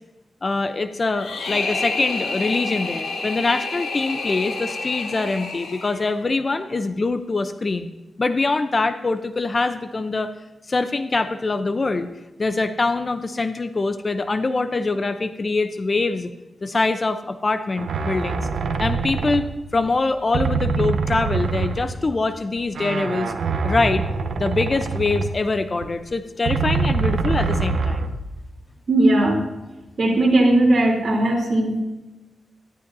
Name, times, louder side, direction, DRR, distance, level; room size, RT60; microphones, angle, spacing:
voice 1, 0.4-7.9 8.2-10.3 10.7-12.1 12.4-16.3 16.6-18.5 18.8-19.5 19.7-23.3 23.6-24.1 24.4-28.0, left 3 dB, 35° left, 10 dB, 0.7 m, -24 dB
sound 1, 1.1-6.3, left 3 dB, 85° left, 2.1 m, -29 dB
sound 2, 17.8-20.0 20.3-22.2 22.6-25.9 26.4-28.4, right 4 dB, 75° right, 0.8 m, -25 dB
voice 2, 28.9-29.4 30.0-31.8, right 1 dB, 50° right, 0 dB, 3.4 m, -18 dB
14.0 x 12.5 x 2.7 m, 1.0 s
wide cardioid pair, 95°, 0 cm